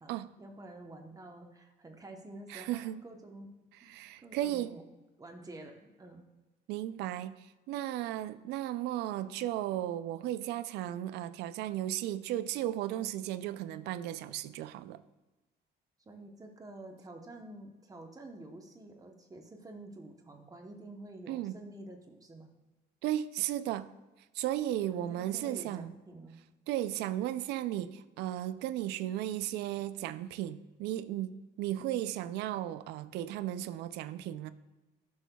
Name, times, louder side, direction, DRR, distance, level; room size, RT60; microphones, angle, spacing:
voice 1, 0.4-3.5 3.8-4.8 5.2-6.2 16.0-22.5 24.9-26.4, right 2 dB, 20° right, 0.9 m, -49 dB
voice 2, 2.5-3.0 3.9-4.8 6.7-15.0 21.3-21.6 23.0-23.9 24.3-25.9 26.7-34.5, right 13 dB, 85° right, 0.4 m, -35 dB
11.0 x 6.4 x 2.3 m
cardioid pair, 110°, 17 cm